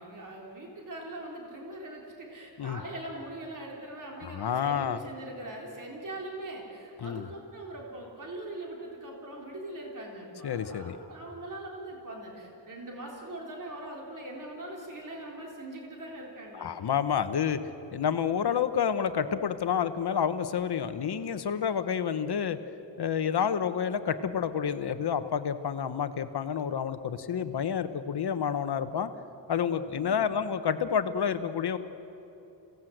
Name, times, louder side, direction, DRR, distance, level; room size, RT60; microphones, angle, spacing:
voice 1, 0.0-16.7 29.9-30.3, right 1 dB, 45° right, -1 dB, 3.8 m, -41 dB
voice 2, 4.2-5.0 7.0-7.3 10.4-11.0 16.5-17.6 17.9-22.6 23.0-29.1 29.5-31.8, left 8 dB, 60° left, 10 dB, 1.1 m, -29 dB
28.0 x 17.5 x 7.9 m, 3.0 s
wide cardioid pair, 170°, 45 cm